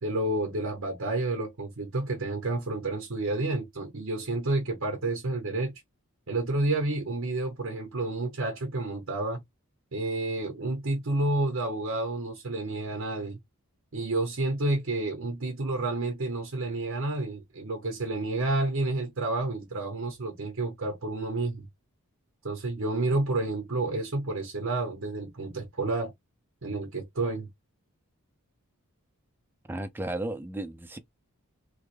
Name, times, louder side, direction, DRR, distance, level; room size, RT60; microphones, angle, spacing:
voice 1, 0.0-5.7 6.3-9.4 9.9-13.4 13.9-21.7 22.4-26.1 26.6-27.5, right 2 dB, 60° right, 1.0 m, -30 dB
voice 2, 29.7-31.0, right 1 dB, 10° right, 0.4 m, -34 dB
3.4 x 2.1 x 3.2 m
head